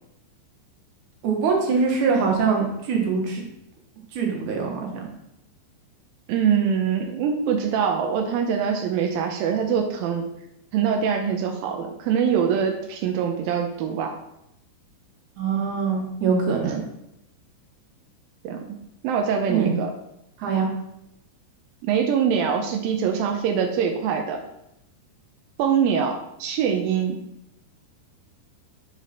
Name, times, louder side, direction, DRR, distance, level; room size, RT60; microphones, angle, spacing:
voice 1, 1.2-3.4 4.2-4.8 15.4-16.8 19.5-19.7 20.4-20.7, right 5 dB, 60° right, 0 dB, 2.4 m, -23 dB
voice 2, 6.3-10.3 10.7-14.1 16.7-16.8 18.4-18.7 19.0-19.9 21.8-24.4 25.6-27.2, right 7 dB, 85° right, 3 dB, 2.1 m, -23 dB
10.5 x 5.0 x 4.3 m, 0.83 s
omnidirectional pair, 5.1 m